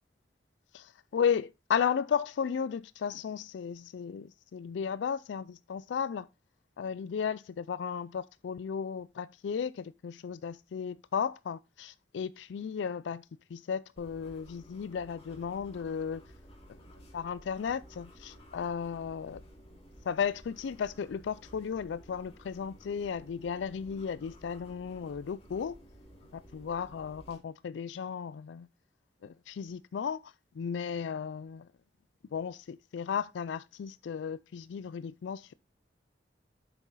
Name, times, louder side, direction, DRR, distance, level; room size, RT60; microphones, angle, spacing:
voice 1, 0.7-6.3 6.8-13.2 13.5-16.2 17.1-19.4 20.1-25.8 26.3-28.7 29.2-31.7 32.3-35.5, left 7 dB, 75° left, 0.3 m, -34 dB
sound 1, 14.0-27.4, equal, 35° left, 2.5 m, -54 dB
7.9 x 6.1 x 3.9 m
head